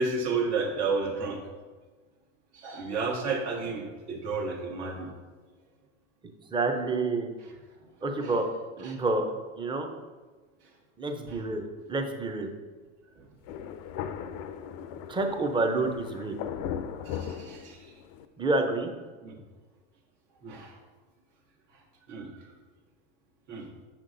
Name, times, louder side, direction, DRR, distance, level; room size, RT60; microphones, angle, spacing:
voice 1, 0.0-1.4 2.5-5.1 7.4-7.5 8.2-8.3 8.8-9.0 11.3-11.5 17.0-17.8 19.2-19.4 20.4-20.8 22.1-22.3 23.5-23.7, right 4 dB, 70° right, 1 dB, 1.4 m, -32 dB
voice 2, 6.5-7.3 8.0-8.5 8.8-9.2 9.6-9.9 11.0-12.5 15.1-16.4 18.4-18.9, right 2 dB, 15° right, 5 dB, 0.5 m, -28 dB
Thunder, 13.4-18.2, left 8 dB, 50° left, 0.4 m, -38 dB
6.2 x 5.8 x 2.6 m, 1.3 s
hypercardioid pair, 105°, 36 cm